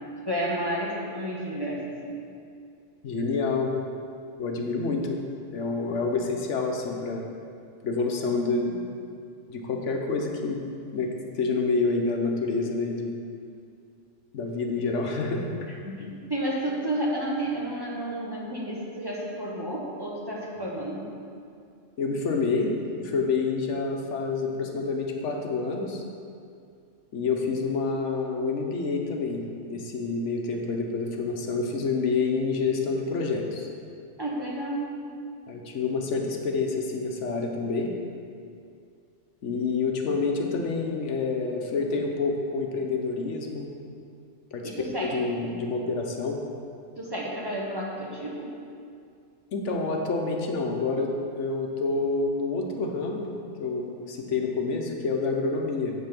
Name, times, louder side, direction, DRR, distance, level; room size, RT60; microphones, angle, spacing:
voice 1, 0.3-2.1 15.8-21.1 34.2-35.0 44.6-45.2 47.0-48.5, right 1 dB, 20° right, -4 dB, 1.1 m, -31 dB
voice 2, 3.0-3.7 4.4-5.2 5.5-7.2 7.8-8.9 9.5-10.6 10.9-13.1 14.3-15.7 22.0-26.0 27.1-33.7 35.5-37.9 39.4-43.7 44.5-44.7 45.0-46.4 49.5-53.3 53.6-55.9, left 4 dB, 80° left, 1 dB, 1.2 m, -28 dB
7.3 x 5.5 x 5.9 m, 2.4 s
omnidirectional pair, 1.2 m